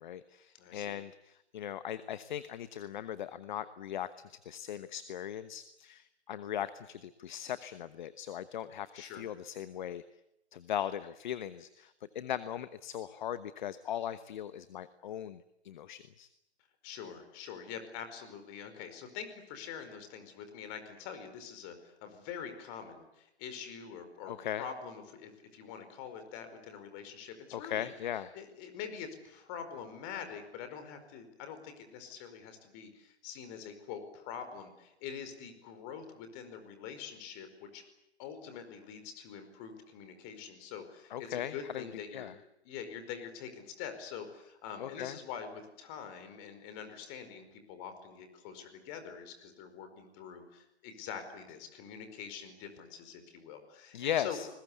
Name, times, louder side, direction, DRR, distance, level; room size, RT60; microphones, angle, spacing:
voice 1, 0.0-10.0 10.5-16.3 24.3-24.6 27.5-28.3 41.1-42.3 44.8-45.2 53.9-54.5, left 10 dB, 45° left, 14 dB, 1.1 m, -39 dB
voice 2, 0.5-1.0 8.9-9.2 16.8-27.9 28.3-37.8 38.2-42.3 42.6-54.4, left 7 dB, 30° left, 8 dB, 4.9 m, -45 dB
29.5 x 21.0 x 8.4 m, 0.87 s
figure-of-eight pair, 135°, 33 cm